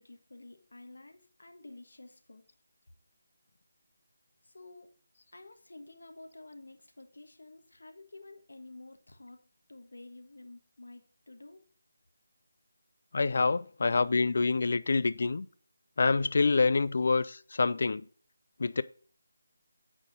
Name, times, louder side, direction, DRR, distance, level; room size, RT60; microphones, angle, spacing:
voice 1, 0.0-2.4 4.4-4.9 5.3-9.4 9.7-11.6, left 2 dB, 90° left, 1.3 m, -51 dB
voice 2, 13.1-15.5 16.0-18.0 18.6-18.8, left 4 dB, 45° left, 0.3 m, -26 dB
8.7 x 4.3 x 5.2 m
figure-of-eight pair, 175°, 0 cm